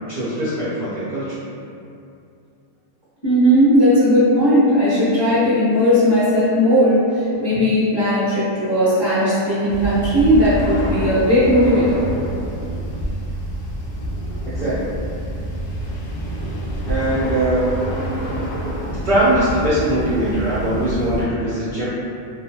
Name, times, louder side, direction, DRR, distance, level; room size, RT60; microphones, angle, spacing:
voice 1, 0.1-1.3 14.5-14.9 16.9-17.8 19.0-21.9, right 1 dB, 65° right, -11 dB, 0.4 m, -21 dB
voice 2, 3.2-12.1, equal, 25° left, -13 dB, 0.5 m, -16 dB
sound 1, 9.7-21.2, equal, 85° left, 0.4 m, -27 dB
2.4 x 2.3 x 2.8 m, 2.5 s
omnidirectional pair, 1.5 m